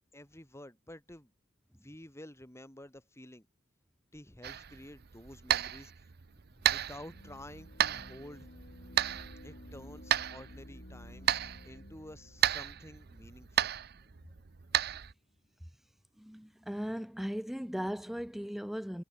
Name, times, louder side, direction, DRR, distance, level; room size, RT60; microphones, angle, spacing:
voice 1, 0.1-1.3 1.8-3.5 4.1-5.9 6.7-8.5 9.4-11.3 11.6-13.7, left 1 dB, 15° left, 2.8 m, -50 dB
sound 1, 4.4-15.1, right 10 dB, 55° right, 0.7 m, -34 dB
sound 2, 7.0-14.2, left 1 dB, 55° left, 3.7 m, -53 dB
voice 2, 16.2-19.0, equal, ahead, 0.3 m, -37 dB
head